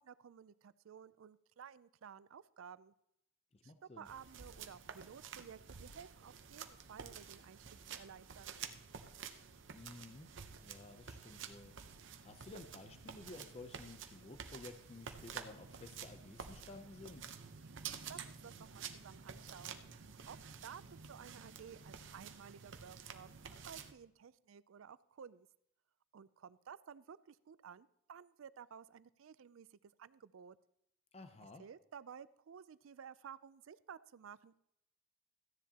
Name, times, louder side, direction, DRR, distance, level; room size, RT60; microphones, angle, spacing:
voice 1, 0.0-2.9 3.6-8.6 18.1-20.8 21.1-25.5 26.1-30.6 31.6-34.6, right 7 dB, 85° right, 17 dB, 0.4 m, -54 dB
voice 2, 3.5-4.1 9.7-10.3 10.6-11.7 12.2-17.3 31.1-31.6, left 3 dB, 30° left, 7 dB, 0.6 m, -53 dB
sound 1, 4.1-23.9, right 6 dB, 65° right, 0.8 m, -50 dB
14.5 x 10.0 x 2.9 m, 0.80 s
head